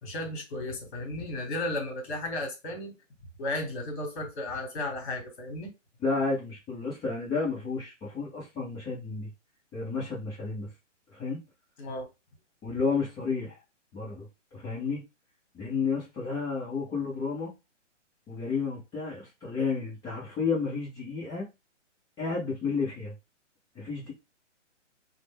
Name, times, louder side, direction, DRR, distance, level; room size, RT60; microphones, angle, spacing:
voice 1, 0.0-2.9 3.4-5.7 11.8-12.1, left 1 dB, 40° left, 1.2 m, -34 dB
voice 2, 6.0-9.3 9.7-10.7 11.1-11.4 12.6-13.6 13.9-14.3 14.5-15.0 15.5-17.5 18.3-21.4 22.2-23.1 23.7-24.1, left 4 dB, 10° left, 0.6 m, -31 dB
2.5 x 2.1 x 3.5 m
hypercardioid pair, 140°, 37 cm